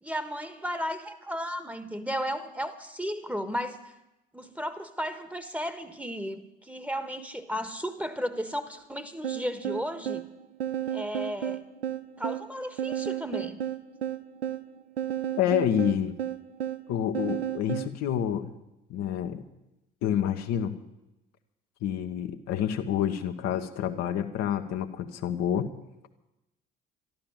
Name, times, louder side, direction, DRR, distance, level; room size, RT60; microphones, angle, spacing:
voice 1, 0.0-3.8 4.3-10.2 10.9-11.6 12.2-13.6, equal, 5° right, 10 dB, 1.5 m, -34 dB
sound 1, 9.2-17.9, right 10 dB, 90° right, 0.5 m, -33 dB
voice 2, 15.4-16.1 16.9-18.5 18.9-19.4 20.0-20.8 21.8-25.7, left 9 dB, 60° left, 5 dB, 1.1 m, -28 dB
12.5 x 12.0 x 7.4 m, 0.92 s
figure-of-eight pair, 50°, 30 cm